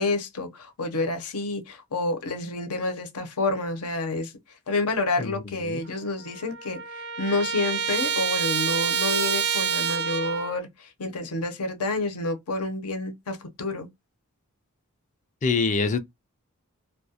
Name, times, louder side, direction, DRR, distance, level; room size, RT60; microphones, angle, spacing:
voice 1, 0.0-4.3 4.7-6.8 7.2-13.9, left 2 dB, 85° left, 0.7 m, -29 dB
voice 2, 5.2-5.8 15.4-16.0, left 4 dB, 35° left, 0.4 m, -26 dB
Trumpet, 5.9-6.0 6.2-10.6, right 7 dB, 50° right, 0.3 m, -27 dB
2.3 x 2.1 x 2.7 m
head